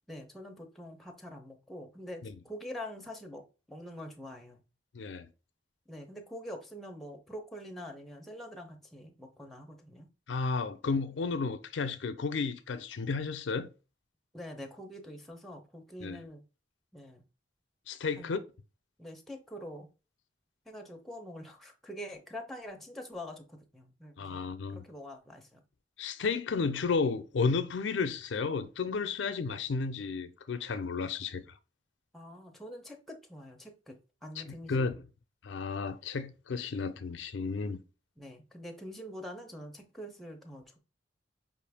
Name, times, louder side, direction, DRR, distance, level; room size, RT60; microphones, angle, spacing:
voice 1, 0.1-3.4 3.7-4.6 5.9-10.1 14.3-16.4 16.9-17.2 18.2-18.4 19.0-19.9 20.7-25.6 32.1-33.9 34.2-34.9 38.2-40.8, equal, ahead, 0.6 m, -45 dB
voice 2, 4.9-5.3 10.3-13.7 16.0-16.2 17.9-18.4 24.2-24.9 26.0-31.4 34.4-35.0 35.4-37.8, left 4 dB, 75° left, 0.4 m, -32 dB
5.2 x 2.5 x 3.4 m
head